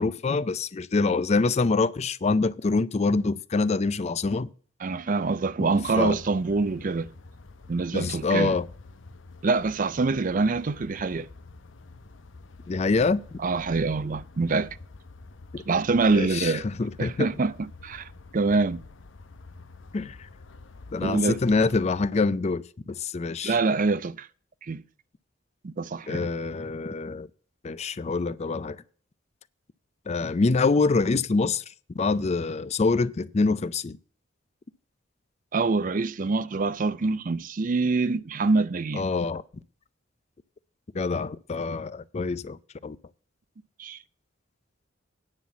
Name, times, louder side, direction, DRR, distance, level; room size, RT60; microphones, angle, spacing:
voice 1, 0.0-4.5 5.6-5.7 6.0-6.2 7.9-8.7 12.7-13.4 15.5-15.6 16.1-17.3 19.9-20.3 20.9-23.6 26.1-27.3 27.6-28.8 30.1-31.6 31.9-34.0 38.9-39.4 40.9-43.0, left 3 dB, 35° left, 0.4 m, -25 dB
voice 2, 4.8-7.1 7.7-8.5 9.4-11.3 13.4-14.8 15.7-16.7 17.0-18.8 21.0-21.4 23.4-24.3 24.6-24.8 25.6-26.3 35.5-39.0 43.8-44.0, right 3 dB, 45° right, 0.5 m, -25 dB
sound 1, 5.7-22.1, left 3 dB, 75° left, 0.8 m, -47 dB
9.8 x 5.8 x 7.2 m
head